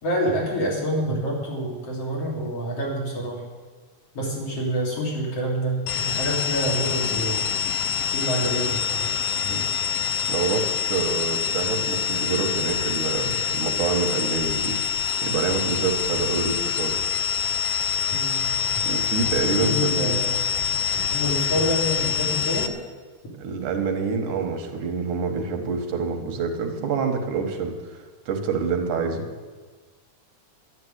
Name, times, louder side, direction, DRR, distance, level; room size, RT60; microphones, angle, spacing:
voice 1, 0.0-3.4 4.1-7.4 8.1-9.1 18.1-18.5 19.4-20.4 20.9-22.7, equal, 50° left, -3 dB, 4.2 m, -27 dB
sound 1, 5.9-22.7, left 7 dB, 75° left, 1.6 m, -25 dB
voice 2, 9.4-9.7 10.3-14.9 15.2-17.0 18.8-20.2 23.4-27.7 28.3-29.2, right 5 dB, 90° right, 4 dB, 3.0 m, -27 dB
11.5 x 10.5 x 8.2 m, 1.3 s
omnidirectional pair, 3.5 m